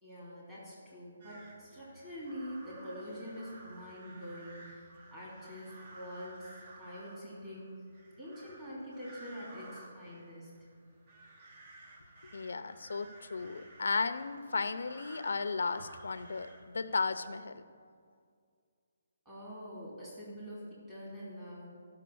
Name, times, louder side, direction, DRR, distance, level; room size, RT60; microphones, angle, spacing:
voice 1, 0.0-7.9 8.2-10.6 19.2-21.7, equal, 10° right, -8 dB, 2.9 m, -45 dB
sound 1, 1.2-17.5, right 2 dB, 30° right, 1.1 m, -54 dB
voice 2, 12.3-17.6, left 4 dB, 80° left, 11 dB, 0.5 m, -35 dB
12.0 x 5.9 x 7.0 m, 2.1 s
hypercardioid pair, 175°, 0 cm